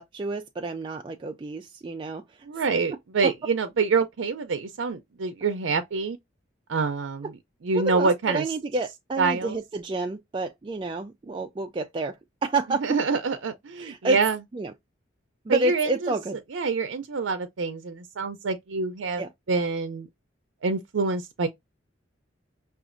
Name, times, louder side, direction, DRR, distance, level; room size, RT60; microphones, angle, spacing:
voice 1, 0.0-2.5 3.2-3.3 7.7-13.0 13.8-14.2 14.5-14.7 15.5-16.4 19.2-19.3, right 3 dB, 25° right, 0.3 m, -29 dB
voice 2, 2.5-6.2 6.7-7.3 7.6-8.4 9.2-9.6 12.8-14.4 15.5-16.1 16.5-19.2 19.5-20.1 20.6-21.5, right 4 dB, 85° right, 0.5 m, -26 dB
5.9 x 2.4 x 2.5 m
head